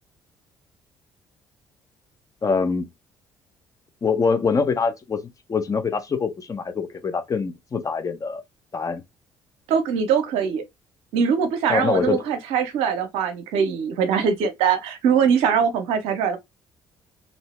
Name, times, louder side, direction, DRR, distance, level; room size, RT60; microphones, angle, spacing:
voice 1, 2.4-2.9 4.0-5.2 5.5-8.4 8.7-9.0 11.7-12.2, left 5 dB, 30° left, 0.8 m, -24 dB
voice 2, 9.7-10.6 11.1-16.4, right 7 dB, 65° right, 0.7 m, -22 dB
2.7 x 2.7 x 3.2 m
figure-of-eight pair, 45°, 11 cm